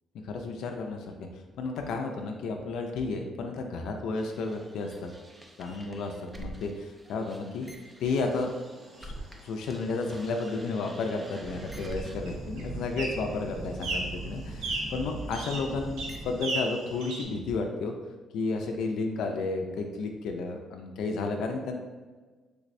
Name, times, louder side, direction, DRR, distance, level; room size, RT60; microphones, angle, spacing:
voice 1, 0.2-1.2 1.6-5.1 5.6-7.7 8.0-8.5 9.0-9.1 9.4-17.9 18.3-21.7, left 3 dB, 85° left, 3 dB, 0.3 m, -32 dB
sound 1, 4.2-9.4 9.7-16.4, right 1 dB, 15° right, 0.4 m, -42 dB
sound 2, 8.0-17.2, right 2 dB, 85° right, 0.6 m, -39 dB
3.3 x 3.1 x 2.5 m, 1.3 s
cardioid pair, 140°, 0 cm